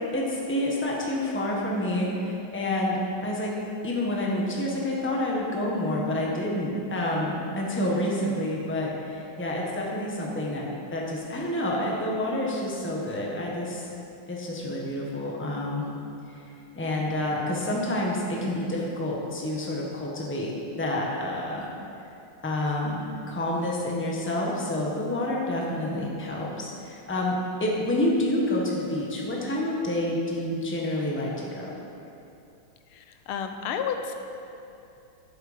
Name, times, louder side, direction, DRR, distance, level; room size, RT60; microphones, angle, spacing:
voice 1, 0.1-3.6 3.8-13.9 14.3-15.8 16.3-16.4 16.8-21.7 22.4-27.3 27.6-31.6, left 1 dB, 5° left, -3 dB, 1.0 m, -28 dB
voice 2, 33.3-34.1, left 7 dB, 90° left, 6 dB, 1.6 m, -30 dB
11.0 x 8.0 x 5.1 m, 2.7 s
omnidirectional pair, 2.3 m